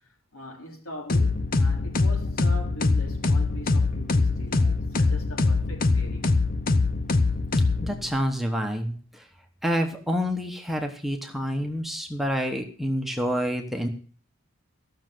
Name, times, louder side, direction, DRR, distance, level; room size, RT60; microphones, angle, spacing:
voice 1, 0.0-6.3, equal, 85° left, 3.9 m, -41 dB
sound 1, 1.1-8.3, left 3 dB, 40° left, 0.7 m, -23 dB
voice 2, 7.8-8.9 9.6-13.9, equal, ahead, 1.2 m, -28 dB
14.5 x 6.5 x 7.7 m
head